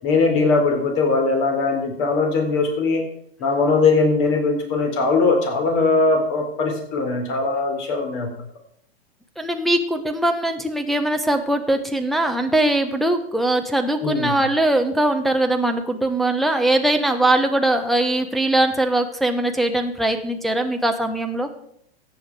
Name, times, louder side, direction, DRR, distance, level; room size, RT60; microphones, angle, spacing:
voice 1, 0.0-3.0 3.4-8.3 14.0-14.4, left 3 dB, 40° left, 4 dB, 4.0 m, -20 dB
voice 2, 9.4-21.5, right 1 dB, ahead, 4 dB, 1.0 m, -21 dB
14.0 x 8.8 x 4.8 m, 0.69 s
hypercardioid pair, 115°, 31 cm